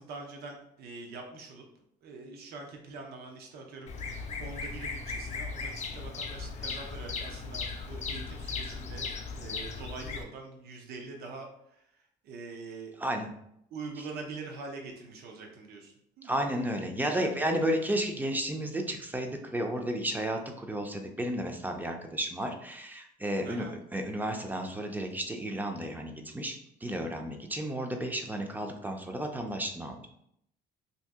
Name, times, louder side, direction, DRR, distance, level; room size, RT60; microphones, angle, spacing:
voice 1, 0.0-1.6 2.0-9.1 9.3-11.8 12.2-12.9 13.7-16.3 17.1-17.3 17.5-17.6 23.4-23.7, right 3 dB, 70° right, 2 dB, 0.7 m, -44 dB
Bird vocalization bird call bird song, 3.9-10.2, left 4 dB, 40° left, 0.5 m, -37 dB
voice 2, 13.0-13.3 16.2-23.7 23.9-30.1, right 1 dB, 10° right, 4 dB, 0.4 m, -32 dB
2.7 x 2.6 x 3.5 m, 0.74 s
cardioid pair, 110°, 17 cm